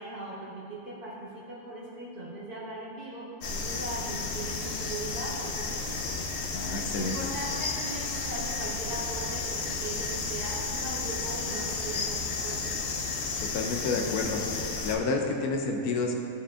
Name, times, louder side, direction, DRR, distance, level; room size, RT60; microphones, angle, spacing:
voice 1, 0.0-6.2 6.9-12.7, right 2 dB, 80° right, -7 dB, 2.2 m, -39 dB
sound 1, 3.4-15.0, left 4 dB, 55° left, 0.8 m, -33 dB
voice 2, 6.5-7.1 13.4-14.4 14.8-16.1, left 3 dB, 85° left, 3 dB, 1.2 m, -29 dB
12.0 x 5.1 x 2.5 m, 2.6 s
omnidirectional pair, 1.6 m